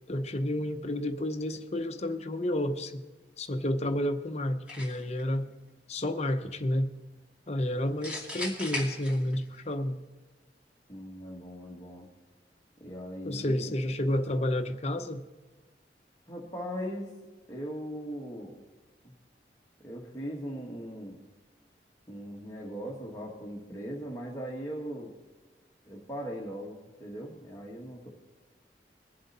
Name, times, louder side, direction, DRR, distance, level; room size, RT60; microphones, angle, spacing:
voice 1, 0.1-3.0 3.4-5.5 5.9-6.9 7.5-10.0 13.2-15.2, left 1 dB, 35° left, 7 dB, 0.8 m, -30 dB
sound 1, 4.7-5.2 8.0-9.6, left 2 dB, 5° right, 2.8 m, -37 dB
voice 2, 10.9-12.1 12.8-13.7 16.3-17.1 17.5-18.6 19.0-19.2 19.8-21.2 22.1-25.1 25.9-28.1, equal, 15° left, -4 dB, 1.6 m, -39 dB
22.0 x 7.5 x 4.2 m, 1.2 s
head